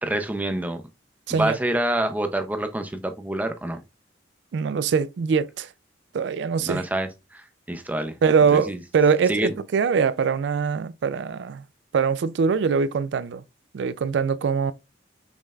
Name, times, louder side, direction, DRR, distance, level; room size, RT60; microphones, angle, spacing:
voice 1, 0.0-0.8 1.3-3.8 6.7-7.4 7.7-8.1 8.5-8.8 9.3-9.5, right 1 dB, 10° right, 0.5 m, -27 dB
voice 2, 1.3-1.6 4.5-5.7 6.1-6.9 8.2-11.6 11.9-13.4 13.7-14.7, right 5 dB, 70° right, 0.3 m, -22 dB
5.3 x 3.2 x 2.3 m
head